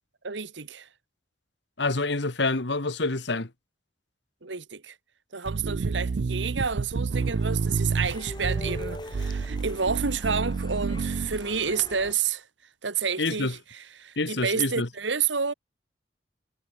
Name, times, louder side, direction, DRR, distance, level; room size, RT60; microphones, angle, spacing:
voice 1, 0.2-0.9 4.4-4.9 5.3-12.5 12.8-15.5, right 6 dB, 80° right, 1.6 m, -30 dB
voice 2, 1.8-3.5 13.2-13.5 14.2-14.9, left 3 dB, 70° left, 1.6 m, -27 dB
sound 1, 5.5-11.4, right 4 dB, 60° right, 0.4 m, -29 dB
sound 2, 7.1-12.1, left 1 dB, 25° left, 1.3 m, -42 dB
head